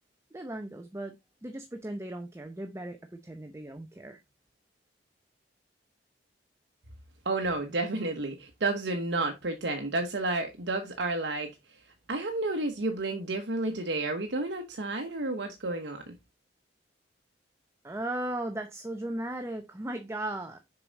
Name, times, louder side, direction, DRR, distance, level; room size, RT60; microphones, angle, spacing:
voice 1, 0.3-1.1 1.4-4.2 17.8-20.6, right 1 dB, 15° right, 0.7 m, -37 dB
voice 2, 7.2-11.8 12.1-16.1, right 2 dB, 75° right, 1.0 m, -31 dB
6.8 x 4.7 x 4.0 m
head